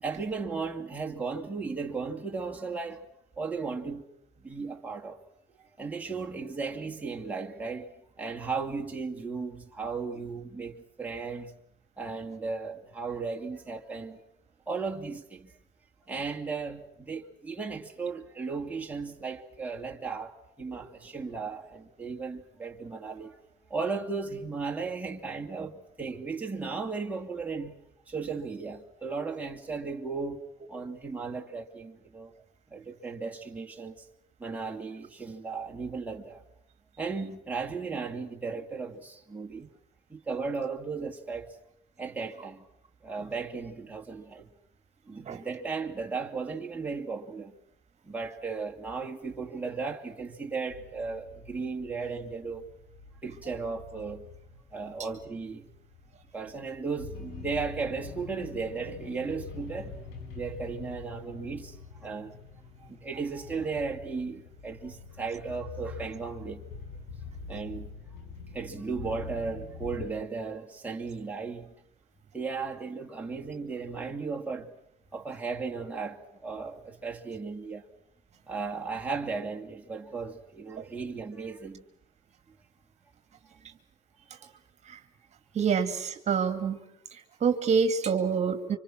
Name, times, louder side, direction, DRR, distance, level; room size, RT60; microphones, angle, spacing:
voice 1, 0.0-3.1 3.4-4.1 4.4-5.2 5.6-11.5 12.0-14.2 14.7-15.6 16.1-23.4 23.7-27.8 28.1-32.3 32.7-34.1 34.4-36.4 37.0-39.7 40.1-41.6 42.0-42.6 43.0-44.5 45.1-47.5 48.0-52.7 53.2-54.2 54.7-55.7 56.3-60.1 60.3-62.3 62.8-66.6 67.5-67.9 68.5-71.7 72.3-74.7 75.1-77.8 78.5-81.8 83.5-83.6 84.4-84.5, right 4 dB, 10° right, 2.7 m, -36 dB
sound 1, 50.7-70.1, left 4 dB, 75° left, 4.9 m, -45 dB
voice 2, 85.5-86.8 87.1-88.8, right 6 dB, 40° right, 2.3 m, -27 dB
29.5 x 26.0 x 6.2 m
cardioid pair, 115°, 18 cm